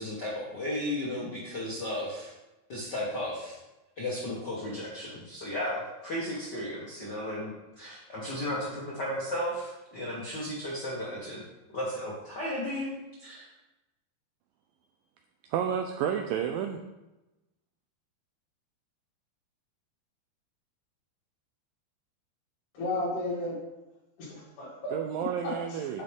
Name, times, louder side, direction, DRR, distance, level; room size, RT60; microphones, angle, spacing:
voice 1, 0.0-2.3 2.7-3.6 4.0-7.5 7.8-11.4 11.7-12.9 13.2-13.5, left 1 dB, 80° left, -6 dB, 0.9 m, -34 dB
voice 2, 15.5-16.8 24.9-26.0, right 8 dB, 85° right, 5 dB, 2.0 m, -30 dB
voice 3, 22.7-23.6 24.2-24.9 25.4-26.0, left 2 dB, 55° left, -6 dB, 3.9 m, -34 dB
10.0 x 7.6 x 3.6 m, 1.0 s
omnidirectional pair, 4.6 m